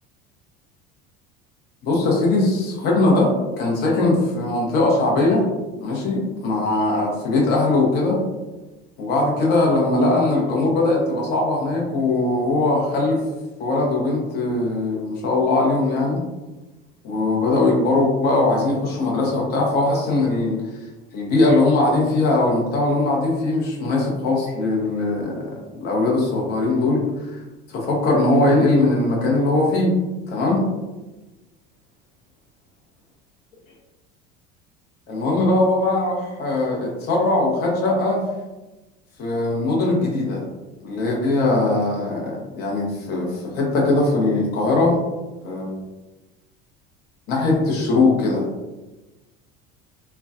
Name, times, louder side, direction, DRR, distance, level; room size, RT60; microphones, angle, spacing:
voice 1, 1.8-5.4 5.8-8.2 9.0-13.2 13.6-16.2 17.0-20.6 21.1-27.4 27.7-29.9 30.3-30.6 35.1-38.2 39.2-40.4 40.8-45.0 45.4-45.8 47.3-48.5, left 2 dB, 50° left, -2 dB, 0.8 m, -20 dB
3.8 x 2.2 x 2.3 m, 1.1 s
cardioid pair, 135°, 21 cm